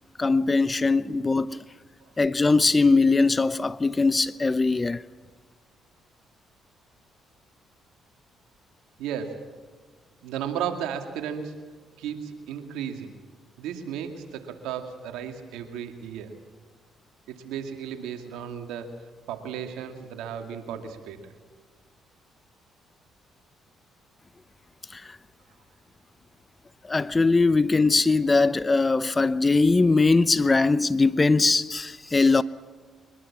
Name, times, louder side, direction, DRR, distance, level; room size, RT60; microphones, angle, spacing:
voice 1, 0.2-1.6 2.2-5.0 24.9-25.2 26.8-32.4, left 3 dB, 25° left, 0.8 m, -21 dB
voice 2, 9.0-9.4 10.2-11.5 12.0-13.2 13.6-16.3 17.3-18.9 19.3-21.3, right 8 dB, 85° right, 2.3 m, -34 dB
23.0 x 21.5 x 7.4 m
supercardioid pair, 65°, 0 cm